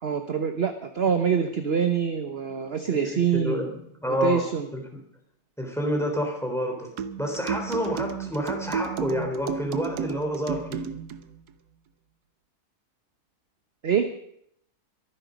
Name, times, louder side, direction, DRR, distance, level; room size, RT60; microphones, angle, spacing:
voice 1, 0.0-3.6 4.2-4.7 13.8-14.1, right 7 dB, 45° right, 7 dB, 1.2 m, -25 dB
voice 2, 2.9-4.4 4.7-4.8 5.6-6.9 7.2-10.9, equal, ahead, 2 dB, 3.5 m, -29 dB
sound 1, 7.0-11.2, right 7 dB, 90° right, 1.4 m, -32 dB
23.0 x 10.5 x 5.2 m, 0.72 s
omnidirectional pair, 1.6 m